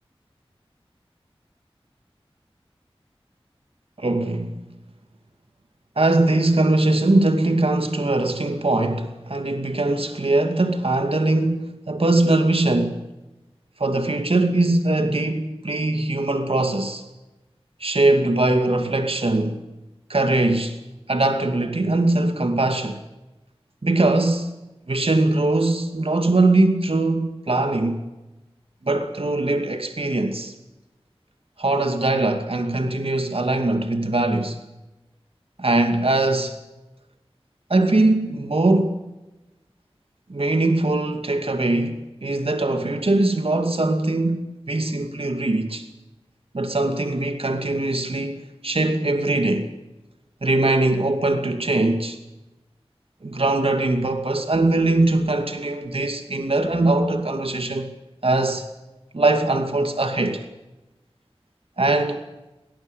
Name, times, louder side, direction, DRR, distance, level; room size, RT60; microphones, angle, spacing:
voice 1, 4.0-4.6 6.0-13.0 13.8-17.0 17.8-19.6 20.1-20.8 21.1-23.0 23.8-24.5 24.9-28.0 28.8-30.5 31.6-34.6 35.6-36.6 37.7-39.0 40.3-45.9 46.5-49.7 50.4-52.2 53.2-57.9 58.2-58.7 59.1-60.4 61.8-62.2, right 2 dB, 70° right, 2.5 m, -21 dB
23.0 x 19.0 x 8.4 m
wide cardioid pair, 55°, 10 cm